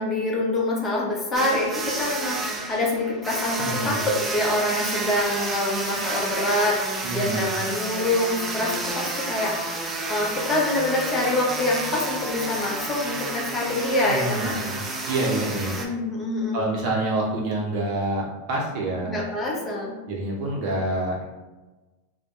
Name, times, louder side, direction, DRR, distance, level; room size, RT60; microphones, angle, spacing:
voice 1, 0.0-9.8 10.1-14.5 15.8-16.7 19.0-19.9, left 2 dB, 25° left, -3 dB, 0.7 m, -26 dB
sound 1, 1.3-15.9, right 2 dB, 20° right, 0.4 m, -30 dB
voice 2, 3.6-4.0 7.0-7.5 14.1-15.8 16.5-19.2 20.1-21.2, right 2 dB, 55° right, -2 dB, 0.7 m, -27 dB
2.2 x 2.1 x 2.9 m, 1.2 s
hypercardioid pair, 105°, 0 cm